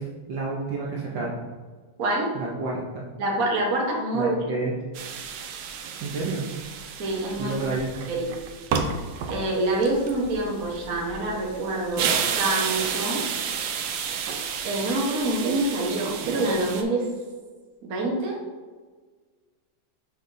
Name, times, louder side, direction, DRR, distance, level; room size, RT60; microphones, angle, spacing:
voice 1, 0.0-1.4 2.3-3.0 4.1-4.7 6.0-6.5 7.4-7.9, right 3 dB, 65° right, -4 dB, 1.5 m, -30 dB
voice 2, 2.0-2.3 3.2-4.3 7.0-7.8 8.1-8.3 9.3-12.1 12.4-13.3 14.6-17.1 17.8-18.4, right 2 dB, 45° right, -2 dB, 1.4 m, -26 dB
sound 1, 4.9-16.8, right 6 dB, 85° right, 1.6 m, -31 dB
6.7 x 5.8 x 2.7 m, 1.4 s
omnidirectional pair, 2.4 m